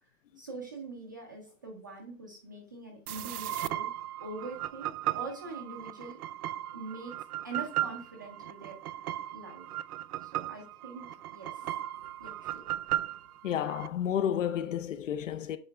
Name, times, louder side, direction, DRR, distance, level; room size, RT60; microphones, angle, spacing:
voice 1, 0.4-3.9 4.2-6.2 6.7-8.8 9.3-9.7 10.2-12.6, right 3 dB, 15° right, 0.5 m, -44 dB
sound 1, 3.1-13.9, right 13 dB, 80° right, 0.6 m, -36 dB
voice 2, 13.4-15.6, left 9 dB, 60° left, 0.7 m, -31 dB
8.8 x 3.8 x 3.3 m
hypercardioid pair, 170°, 44 cm